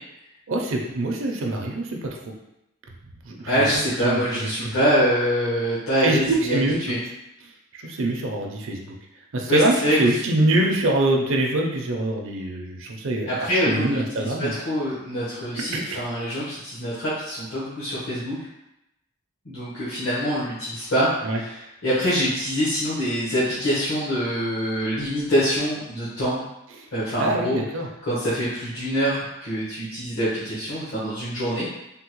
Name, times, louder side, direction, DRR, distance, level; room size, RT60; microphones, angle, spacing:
voice 1, 0.5-2.2 3.2-3.7 4.0-4.2 4.6-4.7 6.0-6.8 7.7-9.0 9.3-14.5 15.6-15.8 21.2-21.4 27.2-27.9, right 2 dB, 60° right, 1 dB, 0.5 m, -24 dB
voice 2, 3.4-7.0 9.5-10.2 13.3-18.4 19.4-26.5 26.9-27.6 28.0-31.8, equal, 65° left, -10 dB, 1.0 m, -25 dB
3.5 x 2.2 x 2.9 m, 0.87 s
head